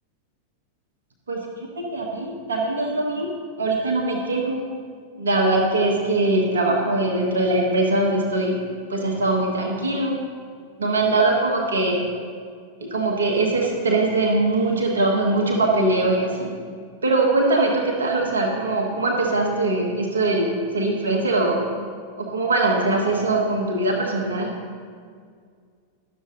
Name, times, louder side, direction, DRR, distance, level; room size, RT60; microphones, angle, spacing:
voice 1, 1.8-3.3 3.6-4.6 5.1-8.6 8.9-10.2 10.8-12.0 12.8-16.5 17.0-21.6 22.2-24.5, right 2 dB, 70° right, -1 dB, 1.3 m, -22 dB
11.5 x 7.0 x 3.8 m, 2.1 s
figure-of-eight pair, 90°, 0 cm